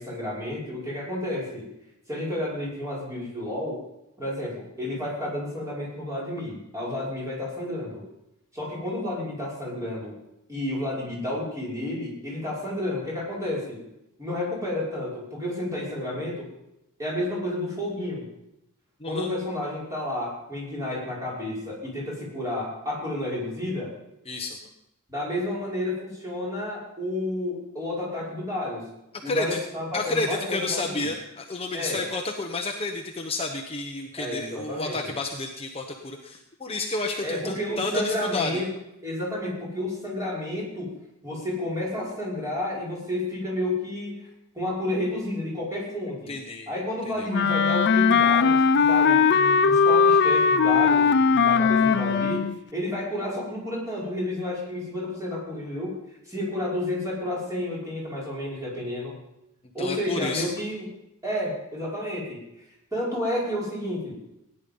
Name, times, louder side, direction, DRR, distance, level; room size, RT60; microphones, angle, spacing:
voice 1, 0.0-1.7 2.1-3.8 4.2-8.0 8.5-10.2 10.5-13.8 14.2-16.5 17.0-18.3 19.0-23.9 25.1-28.9 29.2-31.1 31.7-32.1 34.2-35.1 37.2-38.7 39.0-40.9 41.2-44.3 44.5-46.4 46.7-52.4 52.7-56.0 56.3-59.2 59.7-60.9 61.2-62.5 62.9-64.2, left 1 dB, 15° right, -6 dB, 5.6 m, -31 dB
voice 2, 19.0-19.3 24.3-24.6 29.2-29.6 29.9-38.6 46.3-46.7 47.2-47.3 59.8-60.4, left 2 dB, 25° left, 2 dB, 1.0 m, -30 dB
Wind instrument woodwind instrument, 47.3-52.6, left 5 dB, 50° left, 0.5 m, -19 dB
17.5 x 10.0 x 5.4 m, 0.85 s
head